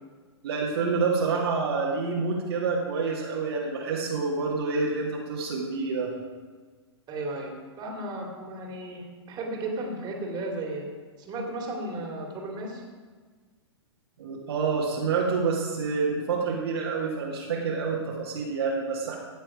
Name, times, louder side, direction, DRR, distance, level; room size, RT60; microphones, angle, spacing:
voice 1, 0.4-6.1 14.2-19.2, right 4 dB, 60° right, -3 dB, 2.1 m, -28 dB
voice 2, 7.1-10.8 11.2-12.8, right 2 dB, 30° right, 0 dB, 2.9 m, -34 dB
17.0 x 6.8 x 5.0 m, 1.5 s
figure-of-eight pair, 110°, 15 cm